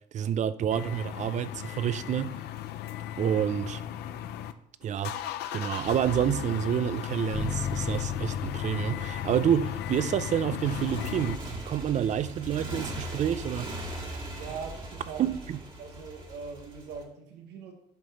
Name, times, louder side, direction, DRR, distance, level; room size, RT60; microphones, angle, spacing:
voice 1, 0.1-2.4 3.2-3.8 4.8-5.2 5.5-13.7 14.0-14.3 15.2-15.6, right 9 dB, 45° right, 0.4 m, -28 dB
sound 1, 0.7-4.5 4.8-11.4, left 12 dB, 75° left, 0.5 m, -36 dB
Bass guitar, 7.3-13.6, left 6 dB, 30° left, 0.7 m, -38 dB
Motorcycle, 10.6-17.0, right 1 dB, 30° right, 1.7 m, -39 dB
voice 2, 14.4-15.5 15.8-17.7, right 5 dB, 85° right, 1.1 m, -41 dB
7.8 x 5.7 x 4.2 m
cardioid pair, 110°, 17 cm